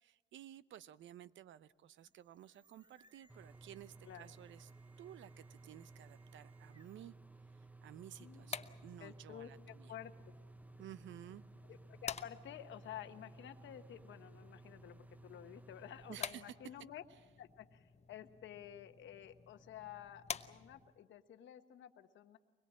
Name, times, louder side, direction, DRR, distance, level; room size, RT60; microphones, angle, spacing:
voice 1, 0.0-4.7 5.0-7.1 7.5-9.9 10.8-11.4 16.1-16.5, right 11 dB, 70° right, 17 dB, 0.7 m, -54 dB
sound 1, 1.9-7.2, right 3 dB, 25° right, 1.6 m, -71 dB
sound 2, 3.3-16.2, right 3 dB, 10° right, 0.7 m, -58 dB
sound 3, 8.1-21.0, left 6 dB, 35° left, 0.9 m, -51 dB
voice 2, 9.0-10.1 11.7-17.0 17.4-22.4, left 11 dB, 70° left, 8 dB, 1.2 m, -51 dB
23.5 x 21.5 x 7.5 m, 1.3 s
cardioid pair, 90°, 20 cm